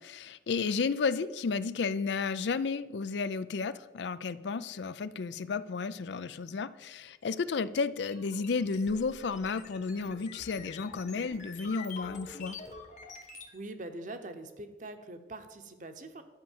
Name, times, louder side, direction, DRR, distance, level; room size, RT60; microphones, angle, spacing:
voice 1, 0.0-12.6, left 4 dB, 80° left, 15 dB, 0.4 m, -32 dB
sound 1, 8.0-13.5, left 5 dB, 45° left, 1.2 m, -47 dB
voice 2, 13.5-16.2, right 2 dB, 45° right, 8 dB, 0.9 m, -43 dB
11.0 x 5.5 x 7.3 m, 1.2 s
head